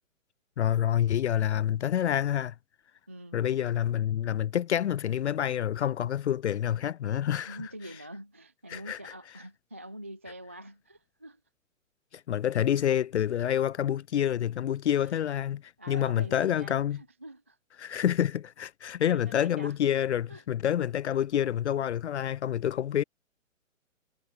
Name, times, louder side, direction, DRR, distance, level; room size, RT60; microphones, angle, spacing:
voice 1, 0.6-2.5 3.3-7.6 8.7-9.1 12.1-17.0 17.8-23.0, left 10 dB, 60° left, 0.5 m, -28 dB
voice 2, 3.1-3.4 7.5-11.4 15.8-17.6 19.1-19.7 20.3-20.4, right 1 dB, 10° right, 0.3 m, -45 dB
figure-of-eight pair, 130°, 40 cm